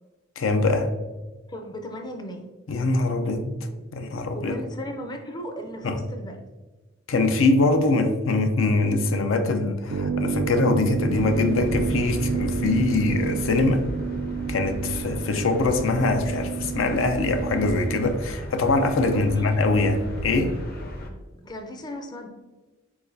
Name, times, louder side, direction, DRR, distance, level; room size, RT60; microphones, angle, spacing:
voice 1, 0.4-0.9 2.7-3.6 3.9-4.6 5.8-6.0 7.1-13.8 14.5-20.6, left 2 dB, 85° left, 6 dB, 0.6 m, -23 dB
voice 2, 1.5-2.5 3.8-3.9 4.3-6.4 19.0-19.6 21.1-22.3, left 1 dB, 20° left, 4 dB, 0.5 m, -36 dB
sound 1, 9.9-18.1, right 5 dB, 55° right, 0.3 m, -29 dB
sound 2, 11.1-21.1, equal, 50° left, 0.8 m, -35 dB
4.8 x 4.1 x 2.6 m, 1.2 s
head